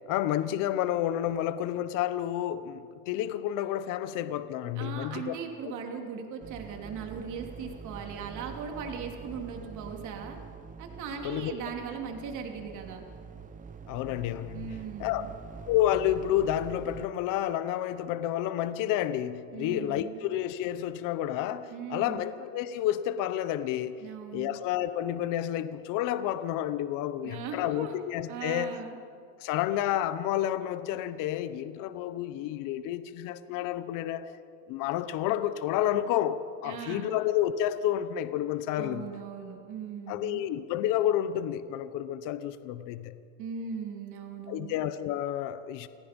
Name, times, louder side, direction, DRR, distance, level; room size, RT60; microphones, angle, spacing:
voice 1, 0.1-5.3 5.6-5.7 11.2-11.5 13.9-14.7 15.0-15.2 15.7-24.0 24.3-28.8 29.4-34.3 34.7-39.1 40.1-43.2 44.5-45.9, left 12 dB, 50° left, 1.0 m, -30 dB
voice 2, 4.8-10.4 10.8-13.0 14.5-15.3 19.5-20.2 21.7-22.3 24.0-24.5 27.2-27.9 28.3-29.0 36.6-37.2 38.8-40.4 43.4-44.8, right 6 dB, 45° right, 3.1 m, -39 dB
sound 1, 6.4-17.1, right 5 dB, 20° right, 0.8 m, -45 dB
29.0 x 18.0 x 5.3 m
cardioid pair, 145°, 41 cm